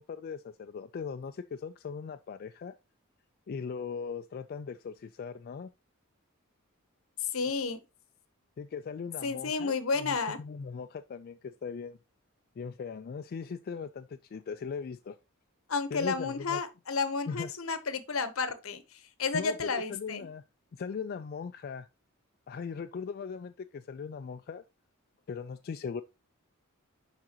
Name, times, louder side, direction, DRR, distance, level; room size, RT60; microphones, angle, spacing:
voice 1, 0.0-2.8 3.5-5.7 8.6-12.0 12.6-15.2 15.9-16.6 17.3-17.5 19.3-20.4 20.7-21.9 22.5-24.6 25.3-26.0, left 5 dB, 45° left, 0.3 m, -39 dB
voice 2, 7.3-7.8 9.2-10.4 15.7-18.8 19.2-20.3, left 4 dB, 75° left, 0.9 m, -31 dB
10.5 x 3.8 x 2.8 m
head